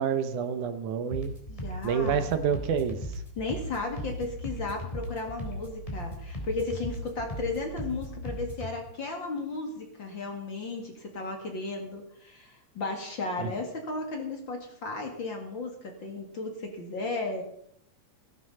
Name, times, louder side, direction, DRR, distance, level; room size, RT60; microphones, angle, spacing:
voice 1, 0.0-1.3 1.8-3.0 13.4-13.5, right 7 dB, 75° right, 10 dB, 2.4 m, -28 dB
sound 1, 1.1-8.7, equal, 10° left, 3.4 m, -37 dB
voice 2, 1.5-2.3 3.4-17.4, left 3 dB, 40° left, 3 dB, 2.3 m, -35 dB
17.0 x 11.0 x 5.5 m, 0.69 s
omnidirectional pair, 3.7 m